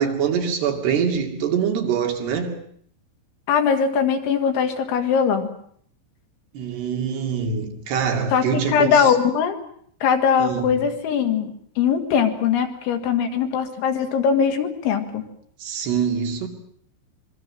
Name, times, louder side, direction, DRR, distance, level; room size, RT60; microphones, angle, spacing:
voice 1, 0.0-2.6 6.5-9.1 10.4-10.9 15.6-16.5, right 7 dB, 65° right, 4.4 m, -24 dB
voice 2, 3.5-5.5 8.3-8.4 8.7-9.6 10.0-15.2, left 7 dB, 80° left, 4.5 m, -21 dB
26.0 x 22.0 x 7.6 m
omnidirectional pair, 5.3 m